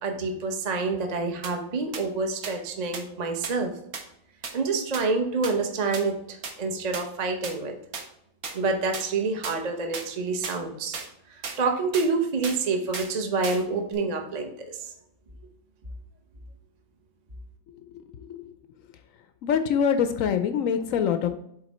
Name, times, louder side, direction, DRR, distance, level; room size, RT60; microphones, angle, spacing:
voice 1, 0.0-3.7 4.5-7.8 8.5-11.0 11.3-14.9, right 3 dB, 35° right, 4 dB, 0.6 m, -27 dB
sound 1, 1.4-1.5 1.9-2.0 2.4-2.5 2.9-3.0 3.4-3.5 3.9-4.0 4.4-4.5 4.9-5.0 5.4-5.5 5.9-6.0 6.4-6.5 6.9-7.0 7.4-7.5 7.9-8.0 8.4-8.5 8.9-9.1 9.4-9.6 9.9-10.1 10.4-10.6 10.9-11.1 11.4-11.6 11.9-12.1 12.4-12.6 12.9-13.1 13.4-13.6 13.9-14.0, right 5 dB, 60° right, 1.3 m, -34 dB
voice 2, 17.7-18.5 19.4-21.3, left 7 dB, 70° left, 9 dB, 0.8 m, -25 dB
8.0 x 3.8 x 4.1 m, 0.75 s
omnidirectional pair, 1.9 m